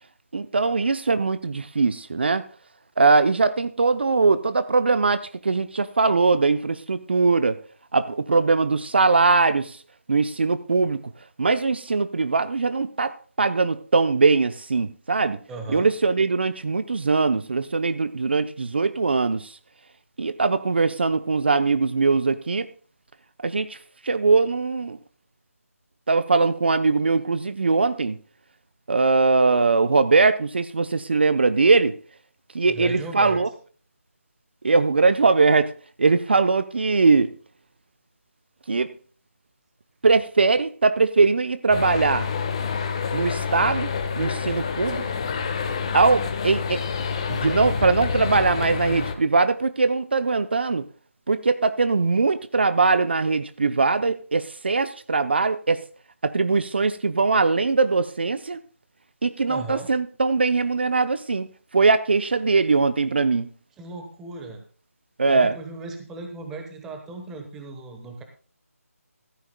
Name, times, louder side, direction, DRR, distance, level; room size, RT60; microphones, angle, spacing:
voice 1, 0.3-2.4 3.0-7.6 7.9-9.8 10.1-11.0 11.4-15.4 15.7-19.6 20.2-22.7 23.4-23.8 24.0-25.0 26.1-28.2 28.9-32.0 32.5-33.5 34.6-35.7 36.0-37.3 38.7-38.9 40.0-42.3 43.1-45.0 45.9-46.8 47.3-50.9 51.3-55.9 56.2-58.6 59.2-61.5 61.7-63.5 65.2-65.5, right 4 dB, 45° right, 12 dB, 0.6 m, -21 dB
voice 2, 15.5-15.9 32.7-33.4 59.5-59.9 63.8-64.6 65.2-68.2, right 3 dB, 5° right, 4 dB, 1.1 m, -36 dB
sound 1, 41.7-49.2, left 5 dB, 20° left, 1.2 m, -28 dB
15.5 x 14.0 x 2.2 m, 0.40 s
figure-of-eight pair, 170°, 8 cm